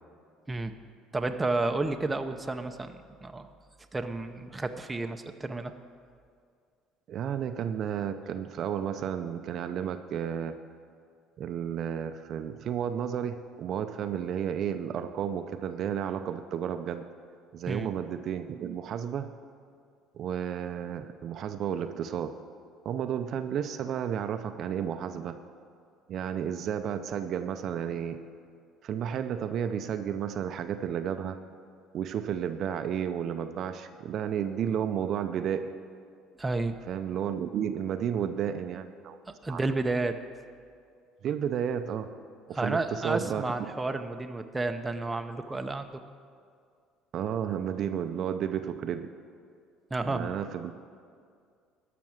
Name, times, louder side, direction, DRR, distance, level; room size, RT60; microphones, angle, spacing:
voice 1, 1.1-3.5 3.9-5.7 17.7-17.9 36.4-36.8 39.4-40.1 42.5-45.9 49.9-50.3, right 2 dB, 15° right, 6 dB, 0.7 m, -31 dB
voice 2, 7.1-10.6 11.4-17.1 17.5-19.3 20.1-22.4 22.8-25.4 26.1-28.2 28.8-31.4 31.9-35.7 36.9-39.2 39.5-39.6 41.2-42.1 42.5-43.7 47.1-49.1 50.0-50.7, right 8 dB, 55° right, 8 dB, 0.6 m, -32 dB
13.5 x 6.0 x 7.8 m, 2.2 s
supercardioid pair, 100°, 0 cm